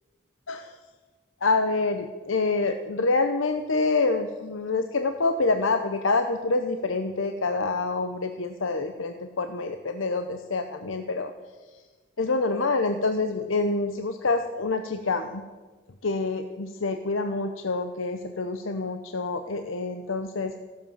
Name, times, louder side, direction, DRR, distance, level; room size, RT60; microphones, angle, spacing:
voice 1, 0.5-0.8 1.4-11.3 12.2-15.4 16.0-20.5, left 3 dB, 85° left, 7 dB, 0.9 m, -27 dB
15.0 x 12.5 x 7.3 m, 1.4 s
head